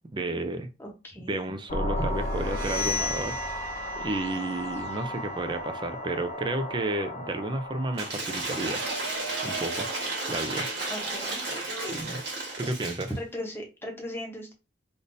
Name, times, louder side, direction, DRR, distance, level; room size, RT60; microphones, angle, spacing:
voice 1, 0.1-0.7 1.3-3.6 4.0-8.9 9.4-9.9 10.3-10.7 11.8-12.2 12.6-13.1, right 2 dB, 25° right, 0.4 m, -32 dB
voice 2, 0.8-1.4 2.0-2.1 10.9-11.4 13.2-14.5, left 1 dB, 15° left, 0.9 m, -38 dB
sound 1, 1.7-8.1, left 1 dB, 35° left, 0.4 m, -34 dB
sound 2, 2.2-7.8, left 2 dB, 60° right, 1.1 m, -38 dB
Cheering / Applause / Crowd, 7.9-13.2, right 2 dB, 80° right, 1.6 m, -32 dB
3.5 x 2.6 x 2.6 m
head